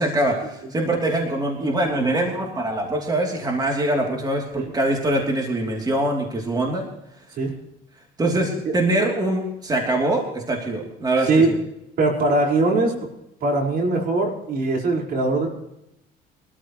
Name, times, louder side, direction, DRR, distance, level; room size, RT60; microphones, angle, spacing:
voice 1, 0.0-6.9 8.2-11.6, right 1 dB, 25° right, 0 dB, 3.1 m, -23 dB
voice 2, 12.0-12.9 13.4-15.5, right 2 dB, 60° right, 0 dB, 4.9 m, -20 dB
23.5 x 13.5 x 3.1 m, 0.82 s
cardioid pair, 110°, 17 cm